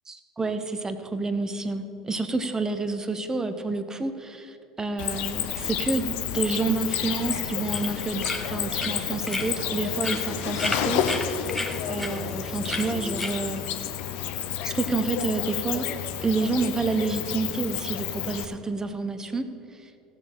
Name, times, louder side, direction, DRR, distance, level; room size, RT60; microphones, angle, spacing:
voice 1, 0.1-11.5 11.9-13.6 14.6-15.8 16.2-19.4, right 3 dB, 20° right, 9 dB, 1.1 m, -29 dB
Cricket, 5.0-18.4, left 10 dB, 60° left, 0.9 m, -30 dB
sound 1, 7.1-13.7, left 1 dB, 5° left, 1.3 m, -35 dB
16.5 x 7.2 x 5.7 m, 2.9 s
hypercardioid pair, 70°, 3 cm